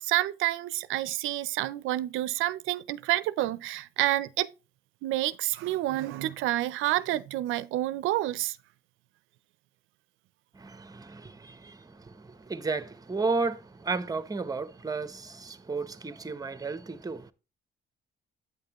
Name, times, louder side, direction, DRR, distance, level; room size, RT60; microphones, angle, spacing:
voice 1, 0.0-4.5 5.0-8.6, right 15 dB, 90° right, 0.4 m, -29 dB
voice 2, 10.5-17.3, right 4 dB, 20° right, 0.8 m, -33 dB
8.5 x 6.6 x 2.9 m
cardioid pair, 90°, 20 cm